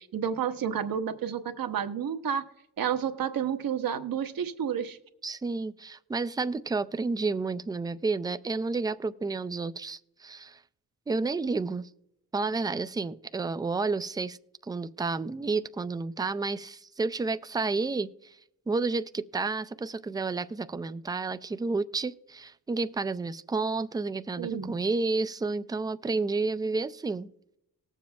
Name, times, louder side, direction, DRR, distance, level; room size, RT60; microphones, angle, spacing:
voice 1, 0.0-2.4 2.8-5.0 24.4-24.8, right 8 dB, 60° right, 1.1 m, -30 dB
voice 2, 5.2-10.6 11.1-11.9 12.3-14.4 14.6-18.4 18.7-27.3, right 3 dB, 10° right, 0.4 m, -31 dB
19.0 x 7.3 x 2.3 m
cardioid pair, 65°, 39 cm